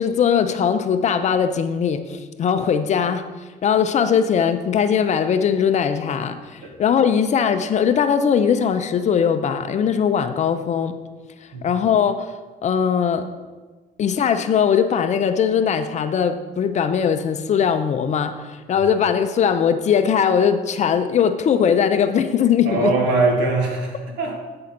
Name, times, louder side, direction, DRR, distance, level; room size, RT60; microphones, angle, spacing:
voice 1, 0.0-3.2 3.6-11.0 11.6-12.3 12.6-13.3 14.0-18.3 18.7-22.9, left 7 dB, 45° left, 9 dB, 0.6 m, -20 dB
voice 2, 22.7-24.4, right 3 dB, 80° right, 1 dB, 1.7 m, -21 dB
8.6 x 3.9 x 5.9 m, 1.3 s
cardioid pair, 110°, 17 cm